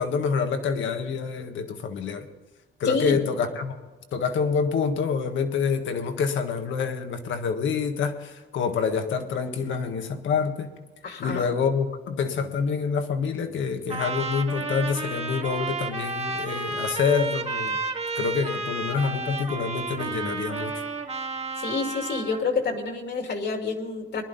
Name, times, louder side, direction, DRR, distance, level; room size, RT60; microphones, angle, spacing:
voice 1, 0.0-2.3 2.8-3.8 4.1-10.7 11.2-17.8 18.1-20.7, left 6 dB, 75° left, 6 dB, 1.6 m, -27 dB
voice 2, 2.8-3.2 11.0-11.5 21.6-24.2, left 4 dB, 60° left, 4 dB, 2.5 m, -28 dB
Trumpet, 13.9-22.5, right 3 dB, 30° right, 1.8 m, -31 dB
21.0 x 11.0 x 4.1 m, 1.3 s
cardioid pair, 90°, 20 cm